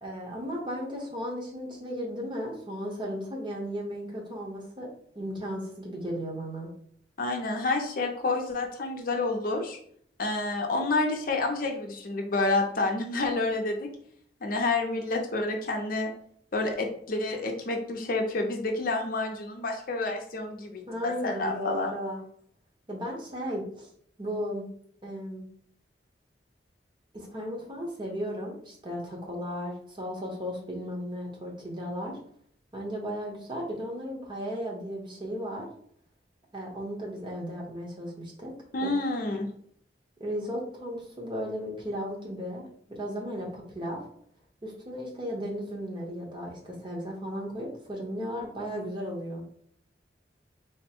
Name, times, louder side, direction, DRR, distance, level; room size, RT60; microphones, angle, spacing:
voice 1, 0.0-4.9 5.1-6.7 20.9-22.2 22.9-23.9 24.2-24.7 25.0-25.5 27.1-32.2 32.7-35.7 36.5-38.5 38.8-38.9 40.2-44.0 44.6-49.4, equal, 25° right, -2 dB, 1.0 m, -35 dB
voice 2, 7.2-9.8 10.2-13.9 14.4-16.1 16.5-21.9 38.7-39.5, left 2 dB, 55° left, 2 dB, 0.6 m, -29 dB
3.5 x 2.1 x 4.3 m, 0.62 s
head